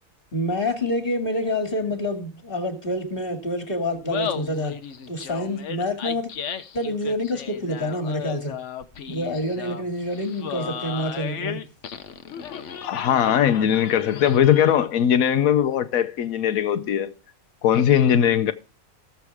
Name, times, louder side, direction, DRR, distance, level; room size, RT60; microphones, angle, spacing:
voice 1, 0.3-4.8 5.1-6.3 6.7-8.5 9.1-11.6, left 1 dB, 40° left, 2.6 m, -27 dB
Laughter, 3.9-15.0, left 8 dB, 60° left, 1.2 m, -35 dB
voice 2, 12.8-17.1 17.6-18.5, left 9 dB, 85° left, 1.2 m, -20 dB
18.0 x 7.3 x 3.5 m
omnidirectional pair, 1.4 m